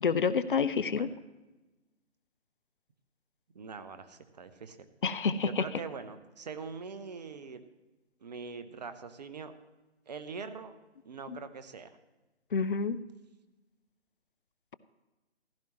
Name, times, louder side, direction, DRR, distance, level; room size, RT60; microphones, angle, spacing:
voice 1, 0.0-1.1 5.0-5.7 11.3-11.4 12.5-13.0, left 5 dB, 50° left, 16 dB, 0.5 m, -28 dB
voice 2, 3.5-4.9 5.4-7.6 8.2-9.6 10.1-10.7 11.0-11.9, right 5 dB, 40° right, 11 dB, 0.8 m, -43 dB
15.0 x 12.0 x 3.1 m, 1.1 s
figure-of-eight pair, 145°, 34 cm